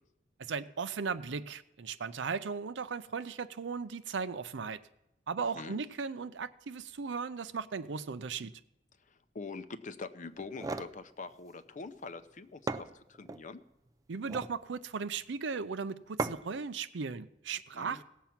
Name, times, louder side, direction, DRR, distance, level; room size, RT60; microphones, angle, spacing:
voice 1, 0.4-4.8 5.3-8.5 14.1-18.0, right 5 dB, 80° right, 0.6 m, -37 dB
voice 2, 5.4-5.8 9.1-13.6 17.7-18.0, left 4 dB, 45° left, 0.6 m, -44 dB
sound 1, 10.4-11.0 12.2-12.3 12.7-13.5 14.1-14.6 16.2-16.6, right 3 dB, 20° right, 0.4 m, -37 dB
17.5 x 7.3 x 5.8 m
head